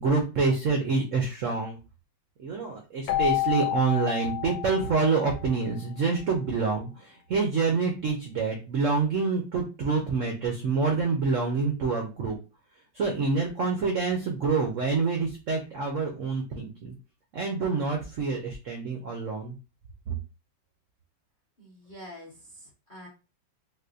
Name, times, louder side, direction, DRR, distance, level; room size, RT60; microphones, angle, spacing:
voice 1, 0.0-1.8 2.4-12.4 12.9-16.9 17.3-19.5 20.1-20.2, right 4 dB, 85° right, 2 dB, 0.6 m, -27 dB
Keyboard (musical), 3.1-5.7, left 15 dB, 80° left, 1.3 m, -30 dB
voice 2, 21.6-23.1, left 1 dB, 40° left, -2 dB, 0.6 m, -46 dB
3.9 x 2.4 x 2.5 m, 0.31 s
omnidirectional pair, 2.1 m